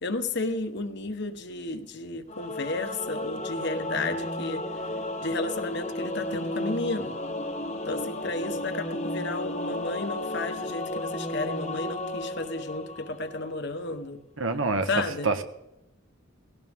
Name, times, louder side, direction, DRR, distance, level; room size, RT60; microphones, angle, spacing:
voice 1, 0.0-4.6 5.2-7.1 7.8-14.2 14.9-15.3, left 2 dB, 55° left, 8 dB, 1.3 m, -32 dB
Singing / Musical instrument, 2.3-13.6, left 1 dB, 35° left, 1.2 m, -33 dB
voice 2, 14.4-14.9 15.2-15.4, right 3 dB, 70° right, 8 dB, 1.4 m, -26 dB
19.0 x 17.0 x 3.7 m, 0.86 s
head